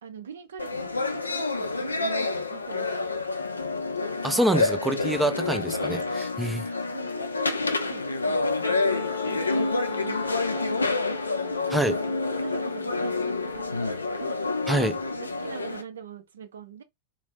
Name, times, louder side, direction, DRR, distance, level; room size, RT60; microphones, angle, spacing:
voice 1, 0.0-3.2 5.0-5.2 6.9-10.8 11.4-11.9 12.3-14.8 15.1-16.8, right 7 dB, 65° right, 0.5 m, -43 dB
sound 1, 0.6-15.8, left 3 dB, 80° left, 0.3 m, -28 dB
voice 2, 4.2-6.7 11.7-12.0 14.7-15.0, right 1 dB, 5° right, 0.3 m, -26 dB
Wind instrument woodwind instrument, 8.6-14.3, left 8 dB, 40° left, 0.6 m, -38 dB
2.5 x 2.0 x 3.3 m
figure-of-eight pair, 90°, 0 cm